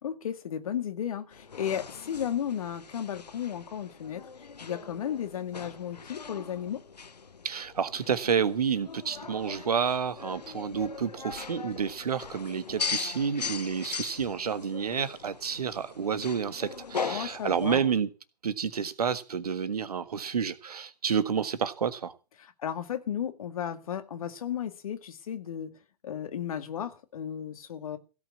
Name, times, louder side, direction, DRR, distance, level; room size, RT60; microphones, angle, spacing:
voice 1, 0.0-4.3 4.6-6.8 17.0-17.9 22.6-25.7 26.0-28.0, left 9 dB, 60° left, 2.1 m, -34 dB
sound 1, 1.3-17.8, left 5 dB, 80° left, 0.7 m, -40 dB
voice 2, 7.4-18.1 18.4-22.1, right 7 dB, 70° right, 1.6 m, -29 dB
16.5 x 5.9 x 8.4 m
figure-of-eight pair, 110°, 21 cm